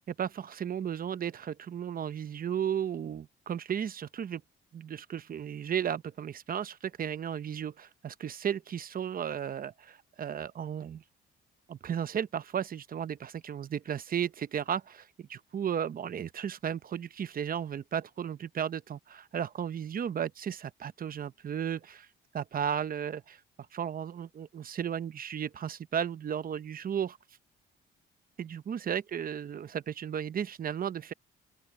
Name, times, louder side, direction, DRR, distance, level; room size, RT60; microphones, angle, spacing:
voice 1, 0.1-4.4 4.7-11.0 11.7-22.1 22.3-23.4 23.7-27.2 28.4-31.1, right 8 dB, 45° right, 0.9 m, -34 dB
open air
cardioid pair, 90°, 20 cm